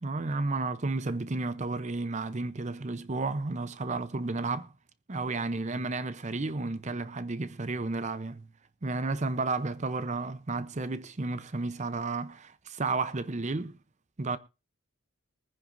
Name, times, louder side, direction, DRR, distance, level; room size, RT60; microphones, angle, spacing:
voice 1, 0.0-4.7 5.1-8.5 8.8-13.7 14.2-14.4, right 3 dB, 35° right, 0.6 m, -32 dB
23.0 x 9.9 x 2.6 m
head